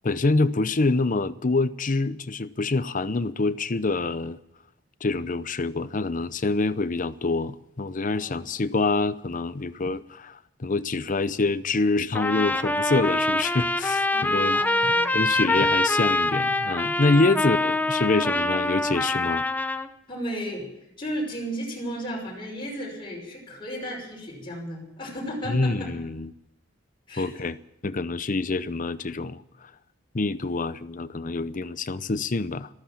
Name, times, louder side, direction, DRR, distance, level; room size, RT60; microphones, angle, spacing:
voice 1, 0.0-4.4 5.0-19.4 25.5-26.3 27.2-27.6 27.8-29.4 30.1-32.7, left 3 dB, 45° left, 0.7 m, -26 dB
Trumpet, 12.1-19.9, left 2 dB, 10° left, 0.8 m, -24 dB
voice 2, 14.1-15.1 17.1-17.4 20.1-20.7 21.0-25.9 27.1-27.3, equal, 30° left, 5.8 m, -34 dB
14.0 x 14.0 x 7.4 m
head